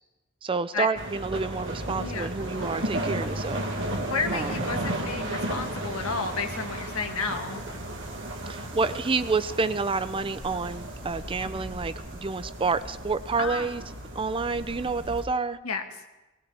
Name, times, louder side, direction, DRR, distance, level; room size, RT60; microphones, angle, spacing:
voice 1, 0.4-4.0 4.3-4.6 8.5-13.8 14.1-15.6, right 4 dB, 25° right, 13 dB, 0.5 m, -29 dB
sound 1, 0.9-15.2, right 1 dB, 65° right, 1.9 m, -34 dB
voice 2, 2.0-2.3 4.1-7.6 13.4-13.7 15.6-15.8, left 4 dB, 90° left, 4 dB, 1.6 m, -31 dB
20.0 x 18.5 x 3.4 m, 1.1 s
head